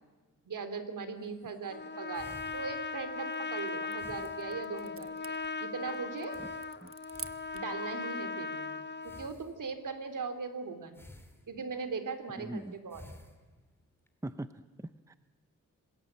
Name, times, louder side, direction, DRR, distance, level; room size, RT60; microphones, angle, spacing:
voice 1, 0.5-6.4 7.5-11.0 11.5-13.0, right 5 dB, 75° right, 9 dB, 3.1 m, -39 dB
sound 1, 1.2-3.4 4.0-5.1 5.4-5.5 5.8-5.9 6.3-8.0 9.0-10.0 10.9-11.9 12.6-14.1, left 1 dB, 5° left, 3.0 m, -55 dB
Trumpet, 1.7-9.4, left 4 dB, 35° left, 0.9 m, -38 dB
sound 2, 3.1-7.8, right 6 dB, 40° right, 1.0 m, -50 dB
voice 2, 12.4-12.8 14.2-15.2, right 1 dB, 10° right, 11 dB, 0.7 m, -41 dB
26.5 x 20.5 x 8.7 m, 1.3 s
wide cardioid pair, 120°, 32 cm